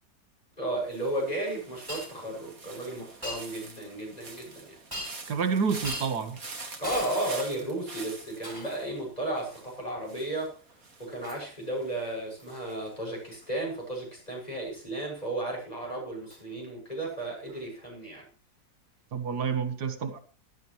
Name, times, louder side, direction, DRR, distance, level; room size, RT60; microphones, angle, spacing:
voice 1, 0.6-4.8 6.8-10.6 11.0-18.3, right 1 dB, 25° left, -1 dB, 7.1 m, -34 dB
sound 1, 0.8-13.8 14.1-14.6, right 3 dB, 60° right, 2.7 m, -46 dB
Shatter, 1.9-2.1 3.2-3.4 4.9-5.3 5.8-6.1 6.8-7.7 8.4-8.9 11.2-11.5 12.4-12.6 13.3-13.5 16.3-16.4 17.5-17.6, equal, 15° right, 5.1 m, -39 dB
voice 2, 5.3-6.4 19.1-20.2, right 6 dB, 90° right, 10 dB, 2.1 m, -29 dB
16.5 x 14.0 x 3.2 m, 0.40 s
omnidirectional pair, 1.7 m